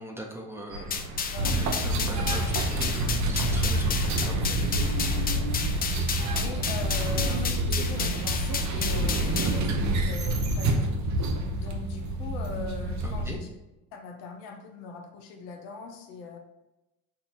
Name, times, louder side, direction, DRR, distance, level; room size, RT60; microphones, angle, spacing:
voice 1, 0.0-4.6 9.3-9.4 13.0-13.4, right 1 dB, 5° right, 0 dB, 0.9 m, -41 dB
sound 1, 0.7-5.9, right 1 dB, 90° right, 0.9 m, -41 dB
sound 2, 0.9-9.6, left 6 dB, 25° left, 0.4 m, -32 dB
voice 2, 1.2-1.6 1.9-2.7 3.4-3.5 5.3-5.5 6.1-9.7 9.9-11.0 11.6-13.5 13.9-16.4, left 4 dB, 75° left, 4 dB, 0.8 m, -41 dB
sound 3, 1.4-13.3, right 1 dB, 45° right, 0.8 m, -27 dB
6.4 x 2.7 x 2.9 m, 0.96 s
hypercardioid pair, 70°, 40 cm